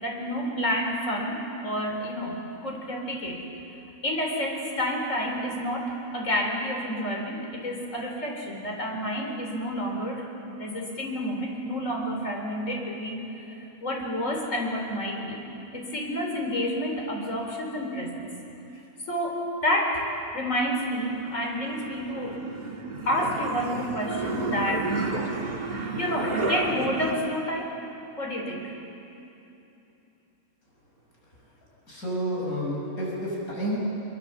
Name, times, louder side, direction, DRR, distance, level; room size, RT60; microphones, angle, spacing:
voice 1, 0.0-3.5 4.0-10.2 10.6-15.4 15.7-18.3 19.1-20.1 20.3-22.4 23.1-25.0 25.4-25.5 26.0-27.8 28.2-28.7, equal, 55° left, 0 dB, 4.1 m, -29 dB
sound 1, 20.7-27.1, right 3 dB, 30° right, 1.9 m, -32 dB
voice 2, 31.9-33.8, equal, 80° left, -4 dB, 6.5 m, -30 dB
23.5 x 23.5 x 7.3 m, 2.9 s
omnidirectional pair, 1.5 m